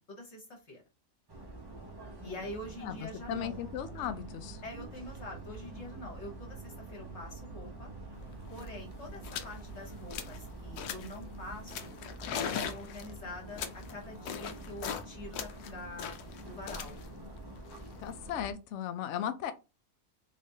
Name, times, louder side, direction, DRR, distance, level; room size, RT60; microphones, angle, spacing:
voice 1, 0.1-0.8 2.2-3.6 4.6-7.9 8.5-11.9 12.4-16.1 16.4-17.0, left 1 dB, 50° left, 1.3 m, -45 dB
sound 1, 1.3-18.5, right 1 dB, 30° right, 0.5 m, -47 dB
voice 2, 2.8-4.6 18.0-19.5, left 10 dB, 65° left, 0.8 m, -36 dB
sound 2, 3.2-11.6, right 5 dB, 65° right, 1.1 m, -50 dB
sound 3, 8.2-8.3 8.5-8.8 9.2-9.6 9.9-10.4 10.8-11.2 11.7-15.1 15.3-18.4, left 8 dB, 90° left, 1.2 m, -40 dB
3.6 x 3.4 x 2.7 m
omnidirectional pair, 1.6 m